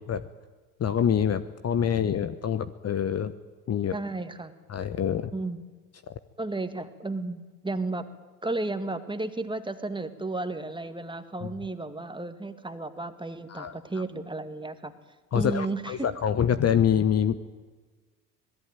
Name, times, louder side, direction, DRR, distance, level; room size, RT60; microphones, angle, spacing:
voice 1, 0.8-3.3 3.7-4.0 4.7-5.3 11.4-11.5 13.5-14.0 15.3-17.4, left 8 dB, 30° left, 11 dB, 1.1 m, -26 dB
voice 2, 3.9-4.5 5.3-5.6 6.4-8.1 8.4-14.9 15.3-16.1, right 2 dB, 10° right, 9 dB, 2.0 m, -33 dB
26.0 x 19.0 x 9.1 m, 1.3 s
hypercardioid pair, 70°, 49 cm